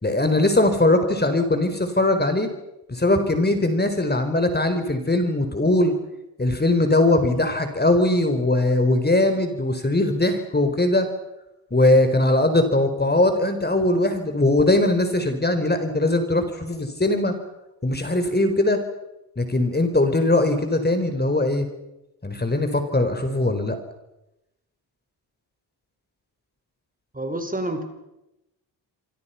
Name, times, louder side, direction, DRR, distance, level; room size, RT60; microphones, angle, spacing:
voice 1, 0.0-2.5 2.9-5.9 6.4-11.1 11.7-17.3 17.8-18.8 19.4-21.7 22.2-23.8, left 2 dB, 20° left, 4.5 m, -20 dB
voice 2, 27.1-27.8, right 1 dB, 15° right, 4.5 m, -28 dB
27.5 x 24.5 x 5.9 m
supercardioid pair, 60°, 47 cm